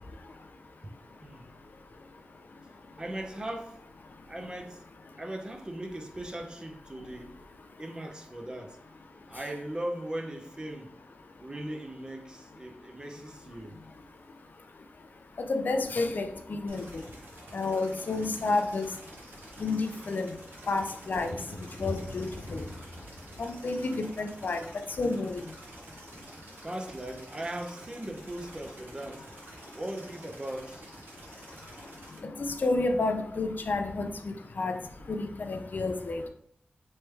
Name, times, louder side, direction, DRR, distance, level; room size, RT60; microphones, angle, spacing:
voice 1, 3.0-3.8 4.3-4.8 5.2-7.4 7.8-8.8 9.3-10.9 11.4-13.8 26.6-29.3 29.7-30.8, right 1 dB, 25° right, 0.5 m, -38 dB
sound 1, 12.9-14.5 15.8-15.9 16.1-16.3 16.6-28.7, left 1 dB, 75° left, 0.9 m, -47 dB
voice 2, 15.5-17.0 17.5-18.9 19.6-20.3 20.7-21.3 21.8-22.3 22.5-22.6 23.4-24.6 25.0-25.4 32.4-34.1 34.6-34.7 35.1-36.3, left 3 dB, 60° left, 0.4 m, -30 dB
sound 2, 16.7-32.2, right 2 dB, 80° right, 0.8 m, -50 dB
3.1 x 3.1 x 3.3 m
wide cardioid pair, 125°, 4 cm